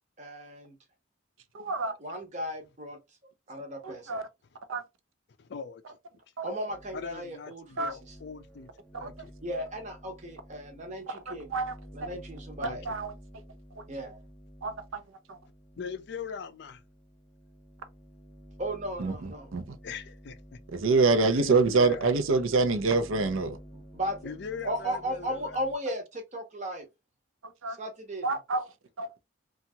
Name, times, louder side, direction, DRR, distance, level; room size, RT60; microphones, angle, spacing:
voice 1, 0.2-0.8 2.0-3.0 3.5-4.2 6.4-8.0 9.4-11.5 11.9-12.8 13.9-14.2 18.6-19.5 23.9-24.3 24.6-26.9 27.8-28.4, equal, 35° right, 0.8 m, -36 dB
voice 2, 1.5-1.9 3.8-4.3 4.7-4.8 6.4-6.5 7.8-7.9 8.9-9.1 11.3-11.7 12.0-12.1 12.6-13.1 13.8-13.9 14.6-15.0 15.3-15.4 19.0-19.8 20.7-23.6 27.4-27.8 28.2-28.7 29.0-29.1, right 3 dB, 75° right, 0.5 m, -27 dB
voice 3, 5.4-6.0 6.9-9.3 12.6-12.8 15.8-16.8 19.8-20.6 21.4-22.1 24.2-25.6, left 6 dB, 55° left, 0.4 m, -41 dB
sound 1, 6.7-7.3 7.6-25.8, equal, 10° left, 0.6 m, -51 dB
2.8 x 2.4 x 2.6 m
head